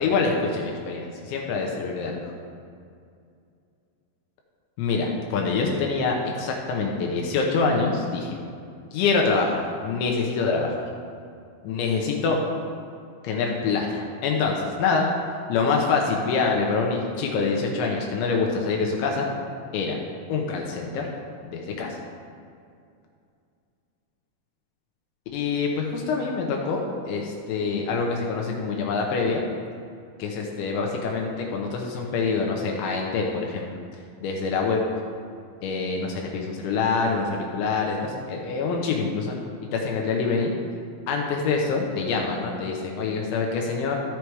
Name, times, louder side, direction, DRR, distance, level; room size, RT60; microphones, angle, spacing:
voice 1, 0.0-2.3 4.8-8.4 8.9-10.8 11.6-12.4 13.2-15.1 15.5-19.3 19.7-20.0 20.3-21.1 21.4-22.0 25.3-29.4 30.2-33.8 34.2-34.8 35.6-39.3 39.7-40.5 41.1-44.0, left 4 dB, 80° left, 0 dB, 3.2 m, -25 dB
14.5 x 5.0 x 4.6 m, 2.4 s
omnidirectional pair, 5.4 m